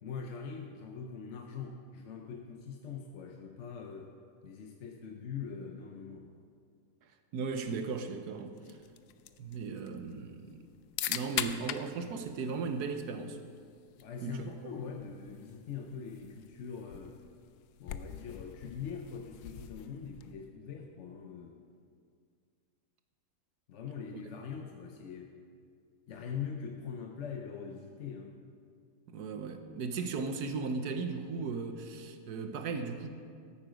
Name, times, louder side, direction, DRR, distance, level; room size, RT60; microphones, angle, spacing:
voice 1, 0.0-4.1 4.4-6.3 14.0-17.2 17.8-21.6 23.7-25.3 26.1-28.4, left 6 dB, 55° left, 3 dB, 0.9 m, -42 dB
voice 2, 7.3-8.6 9.4-10.6 11.1-13.4 14.2-14.5 24.1-24.2 29.1-33.1, right 4 dB, 80° right, 7 dB, 1.4 m, -36 dB
sound 1, 8.6-20.5, left 11 dB, 80° left, 1.1 m, -43 dB
14.0 x 8.8 x 5.1 m, 2.2 s
omnidirectional pair, 1.7 m